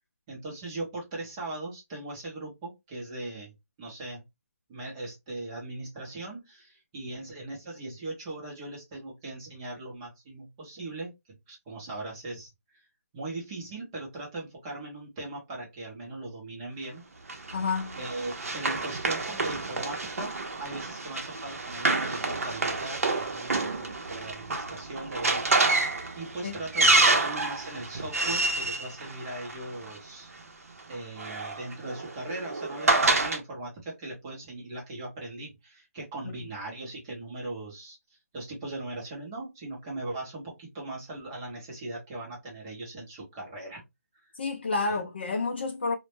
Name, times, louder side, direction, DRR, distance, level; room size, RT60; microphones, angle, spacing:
voice 1, 0.3-3.5 3.8-4.2 4.7-11.1 11.5-12.8 13.1-17.0 18.0-25.7 26.1-30.3 30.9-38.0 38.3-43.8 44.1-44.3 44.9-45.1, right 2 dB, 15° right, 0.6 m, -39 dB
Run, 17.3-29.9 30.9-33.4, right 2 dB, 65° right, 0.6 m, -28 dB
voice 2, 17.5-18.0 26.4-26.5 36.2-36.3 44.4-46.0, left 4 dB, 40° left, 0.4 m, -29 dB
2.1 x 2.0 x 3.0 m
hypercardioid pair, 170°, 8 cm